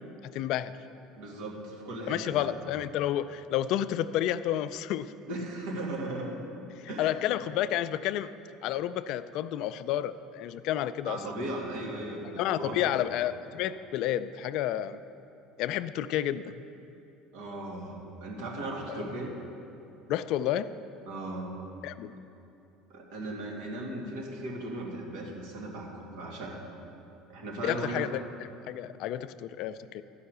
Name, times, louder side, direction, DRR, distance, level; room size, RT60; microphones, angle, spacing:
voice 1, 0.3-0.7 2.1-5.1 6.8-8.3 8.6-11.2 12.4-15.0 15.6-16.6 18.9-19.0 20.1-20.7 21.8-22.1 27.6-28.3 28.7-30.0, left 12 dB, 65° left, 13 dB, 0.4 m, -30 dB
voice 2, 1.1-2.5 5.3-6.4 6.9-7.3 11.0-12.8 17.3-19.3 21.1-21.5 22.9-26.7 27.3-28.1, right 2 dB, 80° right, -2 dB, 2.4 m, -37 dB
12.5 x 5.6 x 6.7 m, 2.9 s
supercardioid pair, 100°, 0 cm